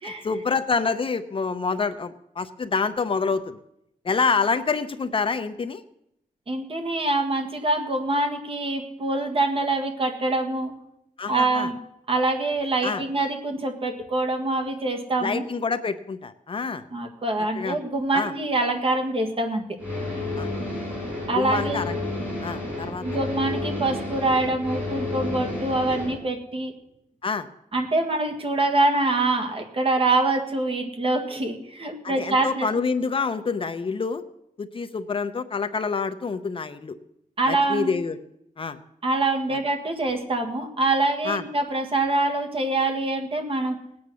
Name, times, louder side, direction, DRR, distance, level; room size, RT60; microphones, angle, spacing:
voice 1, 0.0-3.6 4.0-5.8 11.2-11.7 12.8-13.0 15.2-16.8 17.5-17.8 18.1-18.3 20.4-20.5 21.4-21.9 22.4-23.2 27.2-27.5 32.0-34.2 34.6-36.9 37.5-38.2 38.6-38.8 41.2-41.4, left 5 dB, 40° left, 10 dB, 0.6 m, -27 dB
voice 2, 6.5-10.7 11.3-11.8 12.1-15.4 16.9-19.8 21.3-21.9 23.0-26.7 27.7-32.7 37.4-37.9 39.0-43.8, right 2 dB, 40° right, 4 dB, 1.7 m, -25 dB
sound 1, 19.8-26.1, left 2 dB, 10° right, 7.2 m, -31 dB
18.5 x 8.6 x 6.2 m, 0.79 s
wide cardioid pair, 175°, 14 cm